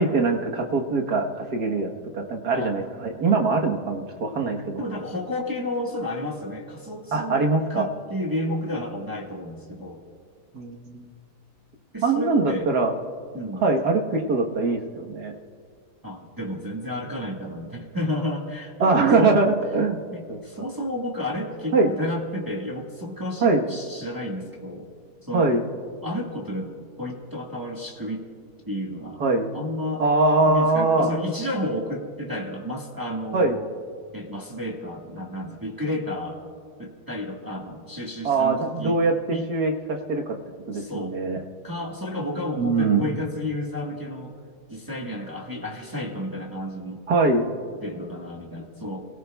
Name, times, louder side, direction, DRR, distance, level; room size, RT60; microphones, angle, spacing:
voice 1, 0.0-4.8 7.1-7.9 10.5-11.1 12.0-12.9 13.6-15.3 18.8-20.0 20.3-20.4 21.7-21.9 23.4-23.6 25.3-25.6 29.2-29.6 30.0-31.1 33.3-33.6 38.2-40.4 40.7-41.4 42.6-43.0 47.1-47.5, right 3 dB, 70° right, 1 dB, 1.8 m, -22 dB
voice 2, 2.5-2.8 4.8-7.4 7.7-10.0 11.9-12.7 13.3-13.6 16.0-19.4 20.1-24.9 25.2-25.6 26.0-28.2 28.7-29.2 29.5-30.0 30.4-33.7 34.1-36.4 36.8-39.0 39.3-39.5 40.7-41.2 41.6-44.4 44.7-47.0 47.8-49.0, left 1 dB, 15° right, -2 dB, 1.4 m, -31 dB
29.5 x 18.0 x 2.3 m, 2.1 s
omnidirectional pair, 1.8 m